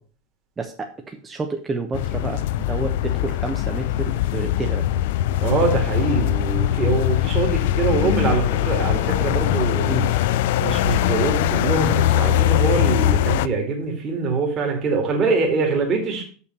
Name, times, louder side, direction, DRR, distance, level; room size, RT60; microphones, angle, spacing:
voice 1, 0.6-4.8 9.9-10.1, right 3 dB, 20° right, 4 dB, 1.0 m, -30 dB
sound 1, 1.9-13.5, left 13 dB, 65° left, 0.4 m, -21 dB
voice 2, 5.4-10.0 10.6-16.2, right 4 dB, 35° right, 0 dB, 2.3 m, -23 dB
6.7 x 5.6 x 6.7 m, 0.43 s
hypercardioid pair, 85°, 0 cm